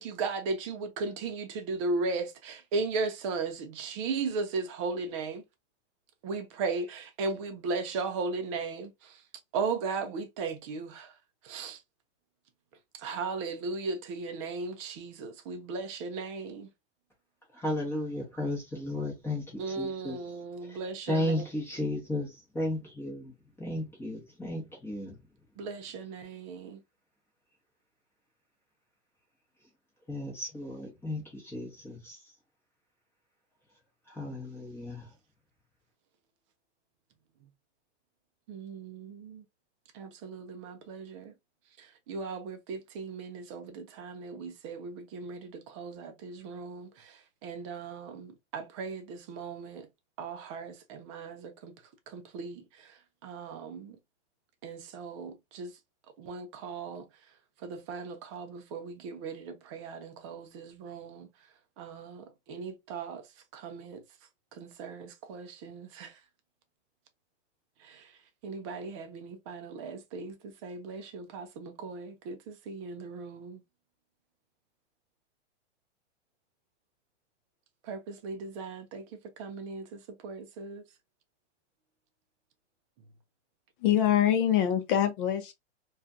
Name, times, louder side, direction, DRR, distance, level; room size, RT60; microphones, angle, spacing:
voice 1, 0.0-5.4 6.2-9.2 9.5-11.1 11.4-11.8 13.0-16.7 19.6-21.4 25.6-26.8 38.5-39.4 39.9-41.3 41.8-49.9 50.2-51.7 52.1-52.9 53.2-54.0 54.6-55.7 56.2-57.1 57.6-61.3 61.8-63.2 63.5-64.0 64.5-66.1 67.8-68.1 68.4-73.6 77.8-80.8, right 4 dB, 25° right, 0.4 m, -37 dB
voice 2, 17.5-20.2 20.6-25.2 30.1-32.3 34.1-35.1, left 1 dB, 5° left, 0.8 m, -34 dB
voice 3, 83.8-85.5, left 10 dB, 45° left, 0.6 m, -24 dB
2.4 x 2.3 x 2.5 m
hypercardioid pair, 140°, 36 cm